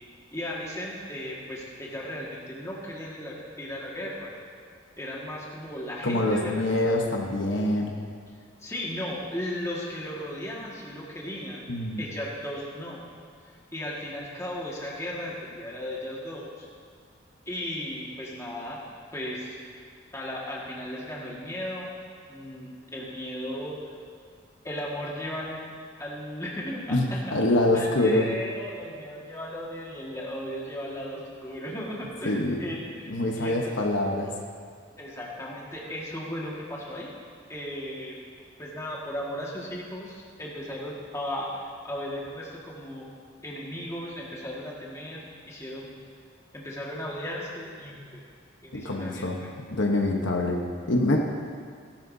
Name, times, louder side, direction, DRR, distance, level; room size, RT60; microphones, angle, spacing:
voice 1, 0.3-4.3 5.0-7.0 8.6-11.7 12.0-13.0 13.5-16.7 17.5-18.8 19.1-19.6 20.1-22.0 22.3-23.8 24.6-25.6 26.0-33.1 33.4-33.8 35.0-37.1 37.5-38.2 38.6-43.1 43.4-45.9 46.5-48.2 48.6-49.5, equal, 15° left, -4 dB, 1.8 m, -36 dB
voice 2, 6.0-7.9 11.7-12.0 26.9-28.3 32.2-32.6 33.1-34.3 48.7-49.4 49.7-50.6 50.9-51.2, left 1 dB, 75° left, 0 dB, 1.1 m, -25 dB
16.5 x 11.5 x 2.8 m, 2.1 s
head